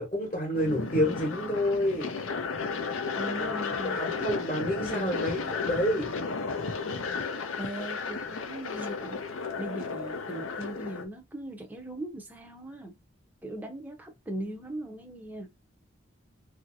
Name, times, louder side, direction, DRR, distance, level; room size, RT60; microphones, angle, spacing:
voice 1, 0.0-2.1 3.4-3.6 3.8-6.1, equal, 30° left, 1.0 m, -29 dB
sound 1, 0.5-11.0, left 4 dB, 80° left, 0.6 m, -34 dB
voice 2, 3.1-5.5 7.6-12.9 13.4-15.5, right 1 dB, 10° right, 0.6 m, -39 dB
3.0 x 2.6 x 2.6 m
head